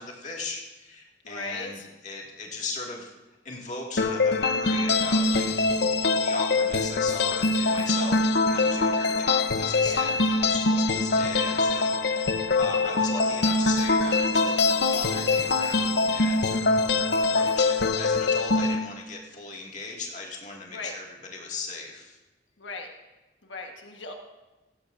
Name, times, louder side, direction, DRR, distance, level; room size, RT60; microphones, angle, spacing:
voice 1, 0.0-3.1 3.4-5.4 6.2-16.8 17.1-21.0 21.3-22.2, left 3 dB, 40° left, -1 dB, 2.1 m, -38 dB
voice 2, 1.2-1.9 9.8-10.2 20.7-20.9 22.6-22.9 23.4-24.1, left 3 dB, 90° left, 2 dB, 1.4 m, -37 dB
sound 1, 4.0-18.7, left 3 dB, 65° left, 0.8 m, -23 dB
17.0 x 15.0 x 2.6 m, 1.1 s
head